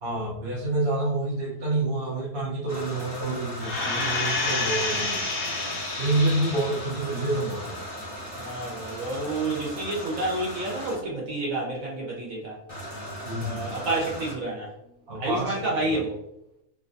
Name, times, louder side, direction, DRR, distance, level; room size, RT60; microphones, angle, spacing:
voice 1, 0.0-5.3 5.9-7.7 13.2-13.7 15.1-15.6 15.9-16.0, right 2 dB, 50° right, -5 dB, 1.2 m, -28 dB
sound 1, 2.7-10.9 12.7-14.3, equal, 25° left, 1.7 m, -38 dB
sound 2, 3.6-7.0 7.5-7.6, left 3 dB, 65° left, 1.3 m, -29 dB
voice 2, 8.4-12.6 13.3-14.7 15.1-16.2, right 2 dB, 65° right, -4 dB, 1.6 m, -29 dB
3.9 x 3.6 x 2.6 m, 0.80 s
omnidirectional pair, 1.6 m